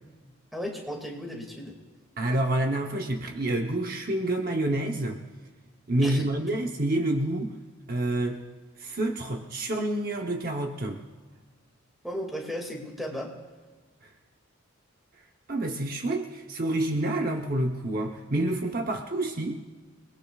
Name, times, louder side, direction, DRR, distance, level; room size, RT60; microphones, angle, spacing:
voice 1, 0.5-1.8 6.0-6.3 12.0-13.4, equal, ahead, 0 dB, 2.3 m, -35 dB
voice 2, 2.2-5.2 5.9-7.5 7.9-8.4 8.8-11.0 15.5-19.6, right 1 dB, 45° right, 2 dB, 0.9 m, -28 dB
28.5 x 20.0 x 2.4 m, 1.4 s
head